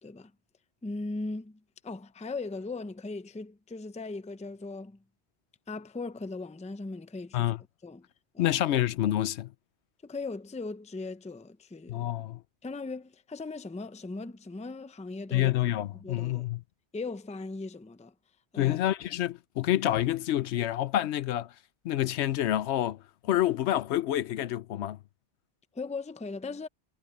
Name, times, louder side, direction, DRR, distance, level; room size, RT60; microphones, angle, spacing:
voice 1, 0.8-5.0 5.7-7.5 7.8-8.1 8.3-8.6 10.0-12.1 12.6-15.5 16.0-16.5 16.9-18.1 18.5-18.8 25.7-26.7, left 3 dB, 10° left, 0.4 m, -38 dB
voice 2, 8.4-9.5 11.9-12.4 15.3-16.6 18.6-21.5 21.8-25.0, left 13 dB, 85° left, 0.9 m, -28 dB
omnidirectional pair, 1.1 m